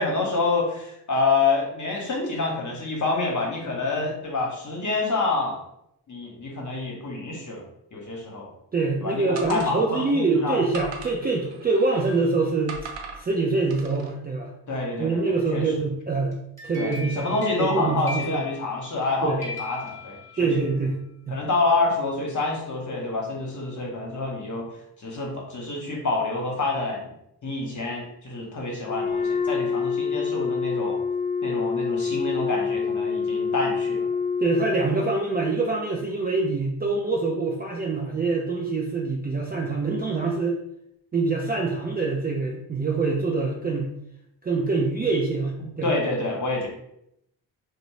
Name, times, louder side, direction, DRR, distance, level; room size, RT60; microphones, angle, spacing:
voice 1, 0.0-5.6 6.1-7.6 7.9-8.5 9.0-10.6 14.7-15.7 16.8-20.5 21.3-24.7 25.0-27.1 27.4-31.0 31.4-34.1 45.6-46.7, left 3 dB, 40° left, 0 dB, 1.0 m, -27 dB
voice 2, 8.7-12.8 13.2-14.5 15.0-16.4 16.6-18.4 19.2-19.4 20.4-21.0 21.3-21.4 34.4-40.6 41.1-43.9 44.4-45.9, right 3 dB, 20° right, -1 dB, 0.4 m, -25 dB
sound 1, 9.4-10.1 10.7-12.2 12.7-13.2 13.7-14.1, right 4 dB, 65° right, 0.7 m, -39 dB
sound 2, 16.3-19.1 19.4-20.7, left 3 dB, 5° left, 1.0 m, -39 dB
Wind instrument woodwind instrument, 28.8-34.9, left 5 dB, 80° left, 0.6 m, -26 dB
2.5 x 2.0 x 3.1 m, 0.77 s
supercardioid pair, 45°, 48 cm